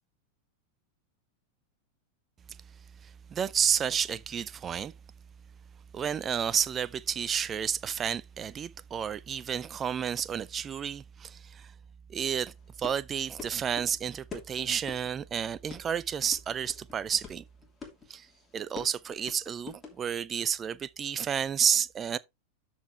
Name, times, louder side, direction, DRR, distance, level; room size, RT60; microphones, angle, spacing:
voice 1, 3.0-4.9 5.9-11.7 12.1-12.5 12.8-17.4 18.1-18.3 18.5-22.2, right 8 dB, 25° right, 0.4 m, -31 dB
sound 1, 12.5-20.1, left 5 dB, 15° left, 2.8 m, -46 dB
12.5 x 4.5 x 3.3 m
figure-of-eight pair, 90°, 0 cm